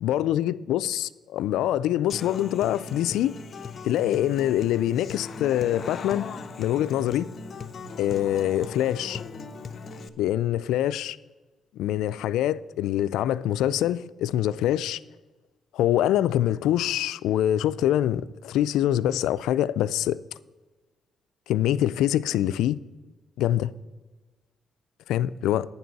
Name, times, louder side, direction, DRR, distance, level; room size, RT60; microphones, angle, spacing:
voice 1, 0.0-3.3 3.8-6.3 6.6-7.3 8.0-9.2 10.2-11.2 11.8-15.0 15.7-20.2 21.5-22.8 23.4-23.7 25.1-25.7, left 12 dB, 85° left, 0.3 m, -24 dB
Human voice / Acoustic guitar, 2.1-10.1, left 4 dB, 50° left, 0.6 m, -38 dB
11.0 x 9.4 x 4.1 m
cardioid pair, 90°, 0 cm